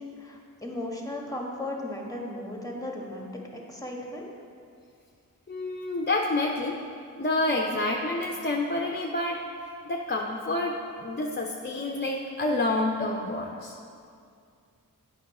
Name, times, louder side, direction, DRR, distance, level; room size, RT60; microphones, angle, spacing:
voice 1, 0.0-3.3 3.7-4.3, left 1 dB, 10° left, -1 dB, 1.5 m, -36 dB
voice 2, 5.5-6.8 7.2-9.4 9.8-10.8 11.0-13.7, left 2 dB, 30° left, 0 dB, 0.6 m, -28 dB
8.1 x 5.6 x 4.3 m, 2.4 s
cardioid pair, 40°, 35 cm